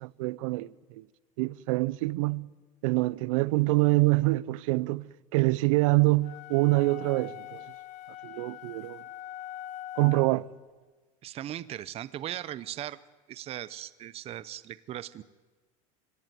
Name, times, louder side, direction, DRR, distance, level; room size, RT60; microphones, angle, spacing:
voice 1, 0.0-1.0 1.4-2.5 2.8-5.0 5.3-7.6 8.2-9.0 10.0-10.5, right 22 dB, 80° right, 0.7 m, -25 dB
sound 1, 6.2-10.5, left 13 dB, 45° left, 1.6 m, -43 dB
voice 2, 11.2-13.0 13.3-15.2, right 12 dB, 35° right, 0.7 m, -38 dB
25.0 x 16.5 x 9.2 m
supercardioid pair, 125°, 17 cm